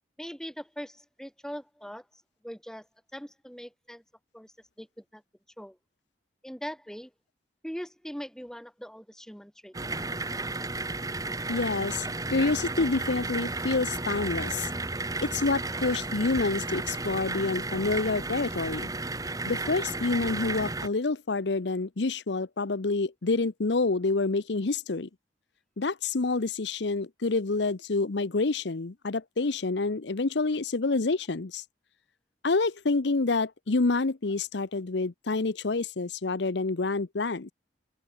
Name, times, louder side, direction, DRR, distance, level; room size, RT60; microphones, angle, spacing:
voice 1, 0.2-2.0 2.4-2.9 3.1-4.0 4.3-5.2 5.6-5.8 6.4-7.1 7.6-9.7, equal, 5° left, 2.4 m, -41 dB
sound 1, 9.7-20.9, right 2 dB, 20° right, 2.7 m, -33 dB
voice 2, 11.5-14.7 15.2-18.9 19.5-25.1 25.8-31.6 32.4-37.5, left 3 dB, 75° left, 0.8 m, -28 dB
head